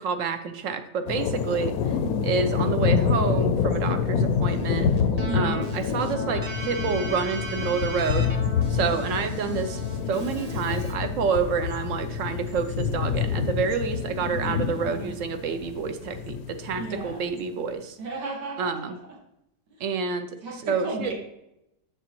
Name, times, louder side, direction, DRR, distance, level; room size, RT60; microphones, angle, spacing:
voice 1, 0.0-1.7 2.2-4.9 5.3-8.3 8.7-9.8 10.1-18.0 18.6-19.0 19.8-20.3 20.6-21.1, right 5 dB, 65° right, 9 dB, 0.8 m, -28 dB
sound 1, 1.1-17.1, left 6 dB, 70° left, 0.9 m, -27 dB
voice 2, 2.0-2.4 5.2-5.6 8.7-9.1 14.6-15.1 16.8-17.3 18.0-18.9 20.4-21.1, right 2 dB, 85° right, -1 dB, 2.4 m, -34 dB
Keyboard (musical), 4.5-10.9, right 1 dB, 35° right, 0.7 m, -37 dB
7.5 x 6.7 x 2.9 m, 0.85 s
omnidirectional pair, 1.8 m